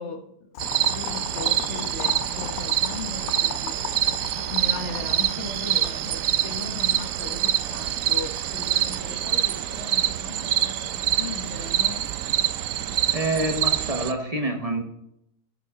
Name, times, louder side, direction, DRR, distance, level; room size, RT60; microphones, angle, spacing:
voice 1, 0.0-3.9 4.5-12.1, left 3 dB, 55° left, 1.4 m, -38 dB
Boiling, 0.5-13.8, left 10 dB, 85° left, 1.1 m, -40 dB
sound 1, 0.6-14.1, right 11 dB, 80° right, 1.0 m, -26 dB
voice 2, 12.8-14.8, right 2 dB, 30° right, 1.2 m, -27 dB
12.5 x 7.4 x 3.6 m
omnidirectional pair, 1.4 m